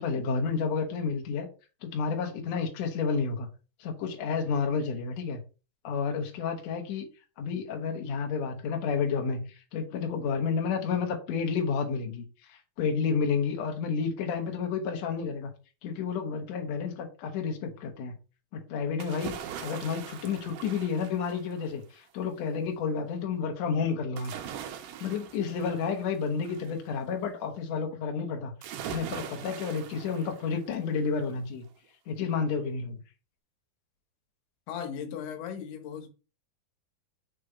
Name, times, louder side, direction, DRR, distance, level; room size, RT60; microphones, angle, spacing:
voice 1, 0.0-1.5 1.8-3.5 3.8-5.4 5.8-7.1 7.4-15.5 15.8-18.2 18.5-24.4 25.0-28.5 28.9-31.7 32.1-33.0, left 5 dB, 60° left, 2.0 m, -31 dB
sound 1, 19.0-21.8 24.2-26.8 28.6-30.9 31.3-31.4, right 9 dB, 80° right, 1.9 m, -42 dB
voice 2, 34.7-36.1, left 8 dB, 85° left, 3.0 m, -37 dB
6.6 x 3.2 x 4.8 m
omnidirectional pair, 4.6 m